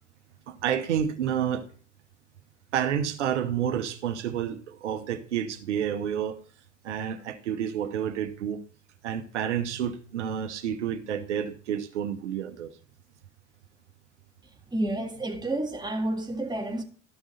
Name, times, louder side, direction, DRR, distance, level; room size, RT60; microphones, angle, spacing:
voice 1, 0.5-1.6 2.7-6.4 6.8-8.6 9.0-12.7, right 9 dB, 80° right, 1.0 m, -29 dB
voice 2, 14.7-16.8, right 1 dB, 10° right, 1.9 m, -30 dB
13.0 x 6.2 x 4.1 m
hypercardioid pair, 70°, 35 cm